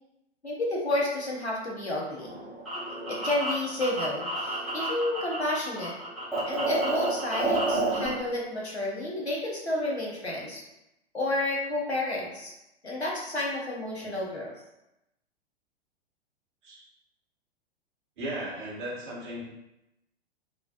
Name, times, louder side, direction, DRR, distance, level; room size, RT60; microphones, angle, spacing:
voice 1, 0.4-2.3 3.1-5.9 6.5-10.6 11.1-12.5 12.8-14.5, left 1 dB, 90° left, -3 dB, 0.9 m, -31 dB
sound 1, 2.1-5.5 5.8-8.1, right 2 dB, ahead, 0.9 m, -30 dB
voice 2, 18.2-19.4, right 1 dB, 50° right, -5 dB, 1.2 m, -36 dB
3.2 x 2.4 x 2.5 m, 0.90 s
figure-of-eight pair, 105°, 32 cm